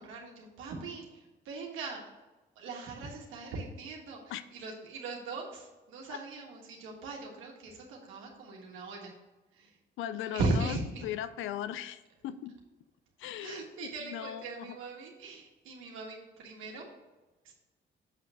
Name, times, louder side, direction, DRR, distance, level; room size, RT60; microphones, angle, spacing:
voice 1, 0.0-2.0 2.5-9.1 9.5-9.8 10.2-11.0 13.4-16.9 17.4-17.5, right 3 dB, 90° right, 0 dB, 1.5 m, -39 dB
voice 2, 10.0-10.8 11.0-12.6 13.2-14.7, left 11 dB, 85° left, 14 dB, 0.5 m, -38 dB
7.3 x 3.3 x 6.1 m, 1.1 s
cardioid pair, 90°, 20 cm